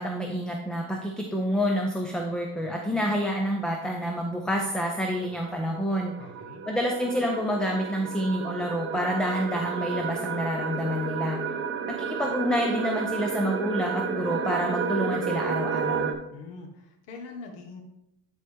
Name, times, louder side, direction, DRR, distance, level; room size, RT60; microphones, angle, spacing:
voice 1, 0.0-6.1 6.7-11.4 11.9-16.1, equal, ahead, 1 dB, 0.5 m, -28 dB
sound 1, 4.3-16.1, right 6 dB, 30° right, 0.8 m, -32 dB
voice 2, 6.2-6.7 16.3-17.8, left 4 dB, 80° left, 2 dB, 1.8 m, -43 dB
10.5 x 4.5 x 3.6 m, 0.85 s
cardioid pair, 145°, 41 cm